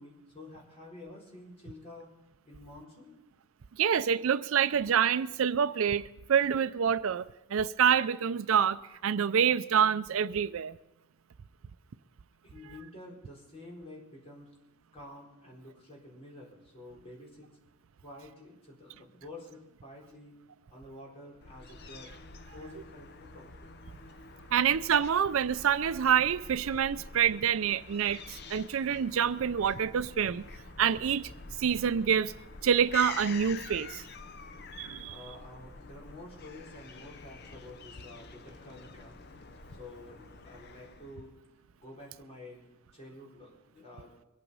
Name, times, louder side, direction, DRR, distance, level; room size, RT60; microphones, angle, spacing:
voice 1, 0.0-2.1 2.4-3.2 12.4-14.5 14.9-17.5 18.0-20.3 20.7-22.1 22.5-23.6 35.0-39.2 39.7-41.3 41.8-44.1, left 1 dB, 30° left, 4.1 m, -49 dB
voice 2, 3.8-7.3 7.5-10.8 24.5-30.5 30.8-31.3 31.6-32.3 32.6-34.0 34.8-35.1, right 8 dB, 70° right, 0.4 m, -27 dB
Fowl / Gull seagull, 21.4-41.3, left 4 dB, 50° left, 0.7 m, -47 dB
23.0 x 8.9 x 5.5 m
head